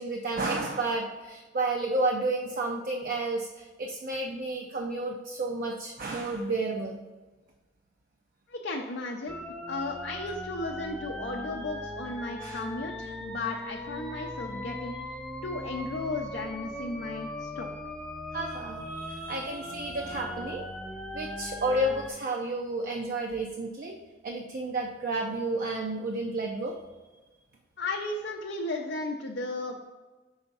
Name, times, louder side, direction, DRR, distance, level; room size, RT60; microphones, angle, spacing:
voice 1, 0.0-7.0 12.4-12.6 18.3-20.7 21.1-24.0 24.2-26.8, right 2 dB, 50° right, 2 dB, 0.5 m, -31 dB
voice 2, 8.5-9.4 9.7-14.9 15.4-17.7 27.8-29.9, left 2 dB, 60° left, 0 dB, 0.5 m, -35 dB
sound 1, 9.3-22.1, left 1 dB, 5° left, 0.4 m, -39 dB
5.6 x 3.5 x 5.4 m, 1.2 s
head